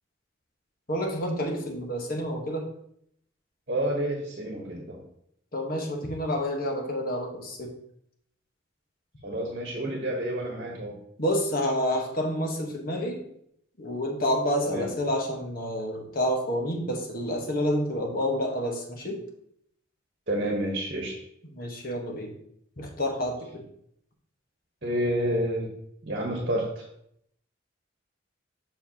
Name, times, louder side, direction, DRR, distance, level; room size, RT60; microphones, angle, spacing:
voice 1, 0.9-2.6 5.5-7.7 11.2-13.2 13.8-19.2 21.5-22.3 22.8-23.6, equal, 50° left, 1 dB, 1.3 m, -29 dB
voice 2, 3.7-5.0 9.2-11.0 14.6-14.9 20.3-21.1 24.8-25.7 26.0-26.8, right 1 dB, 50° right, 0 dB, 1.2 m, -29 dB
7.2 x 5.6 x 2.9 m, 0.72 s
head